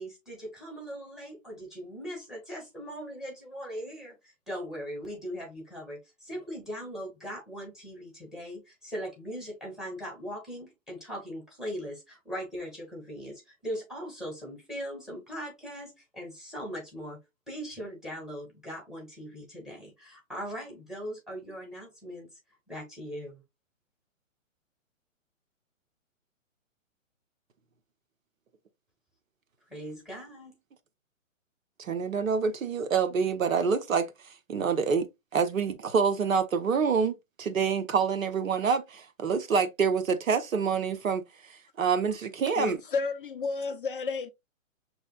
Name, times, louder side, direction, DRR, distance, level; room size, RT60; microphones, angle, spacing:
voice 1, 0.0-17.2 17.5-22.3 22.7-23.4 29.7-30.6, equal, ahead, 1.9 m, -40 dB
voice 2, 31.8-42.8, right 6 dB, 80° right, 1.0 m, -27 dB
voice 3, 42.6-44.3, left 5 dB, 45° left, 0.4 m, -31 dB
6.3 x 3.3 x 2.3 m
hypercardioid pair, 135°, 40 cm